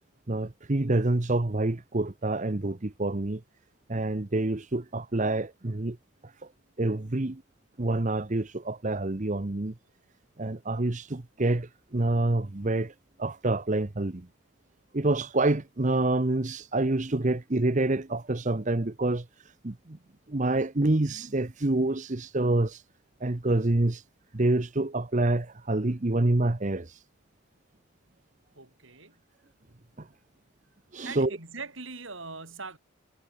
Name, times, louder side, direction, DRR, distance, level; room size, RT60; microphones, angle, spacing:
voice 1, 0.3-3.4 3.9-6.0 6.2-6.5 6.8-7.4 7.8-9.7 10.4-14.3 14.9-20.0 20.3-22.8 23.2-24.0 24.3-27.0 30.0-30.1 30.9-31.3, right 2 dB, 35° right, 0.9 m, -27 dB
voice 2, 28.6-29.2 31.0-32.8, right 4 dB, 65° right, 6.1 m, -41 dB
head